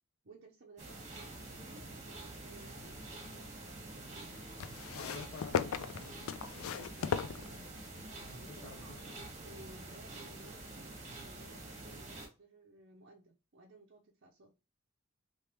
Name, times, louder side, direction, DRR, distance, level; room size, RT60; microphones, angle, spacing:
voice 1, 0.2-4.4 6.7-8.1 8.3-9.1 9.4-14.5, right 2 dB, 55° right, 0.7 m, -58 dB
sound 1, 0.8-12.3, right 2 dB, 35° right, 1.2 m, -47 dB
sound 2, 2.6-3.5 4.6-8.0 8.9-9.0, left 7 dB, 85° left, 0.4 m, -38 dB
voice 2, 4.9-6.5 8.1-8.8, left 4 dB, 45° left, 0.6 m, -50 dB
3.3 x 3.0 x 3.0 m
head